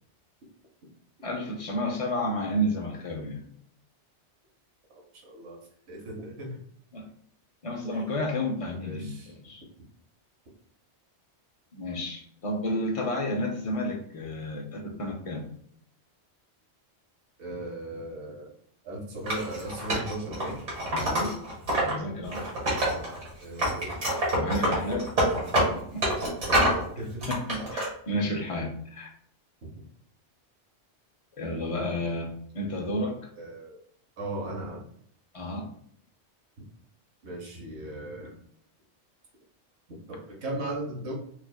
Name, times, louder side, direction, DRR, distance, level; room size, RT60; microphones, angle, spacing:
voice 1, 1.2-3.4 6.9-7.0 7.6-9.6 11.7-15.5 20.9-21.4 21.8-22.4 24.3-25.1 25.6-26.0 27.3-29.1 31.4-33.3 35.3-35.7, left 1 dB, 45° left, 2 dB, 0.5 m, -31 dB
voice 2, 4.9-5.6 5.9-6.6 7.8-8.2 8.8-9.3 17.4-18.5 18.8-20.6 22.8-24.0 26.4-27.3 29.6-29.7 33.4-33.8 34.2-34.8 37.2-38.3 39.9-41.1, right 1 dB, 70° right, -1 dB, 1.2 m, -37 dB
Wood, 19.3-21.9 22.2-23.3 23.6-26.8 27.2-27.9, right 1 dB, 90° right, 1.9 m, -26 dB
4.6 x 2.3 x 2.2 m, 0.66 s
omnidirectional pair, 1.2 m